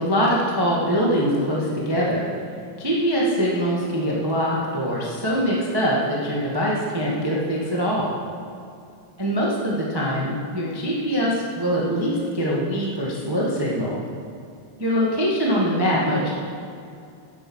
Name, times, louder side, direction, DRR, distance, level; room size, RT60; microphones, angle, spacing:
voice 1, 0.0-2.3 2.8-8.1 9.2-14.0 14.8-16.3, equal, 25° right, -4 dB, 0.5 m, -23 dB
10.5 x 8.3 x 6.3 m, 2.4 s
omnidirectional pair, 3.8 m